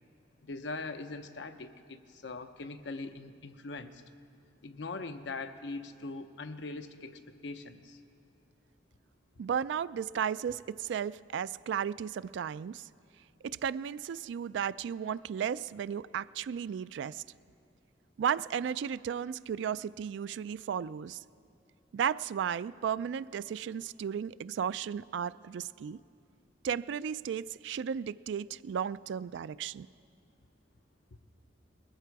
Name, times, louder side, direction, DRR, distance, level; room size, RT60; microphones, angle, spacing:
voice 1, 0.4-4.0 4.6-8.0, left 3 dB, 70° left, 8 dB, 0.8 m, -41 dB
voice 2, 9.4-12.9 13.4-17.2 18.2-21.2 21.9-26.0 26.6-29.9, right 8 dB, 70° right, 17 dB, 0.3 m, -34 dB
20.0 x 14.5 x 4.7 m, 2.5 s
head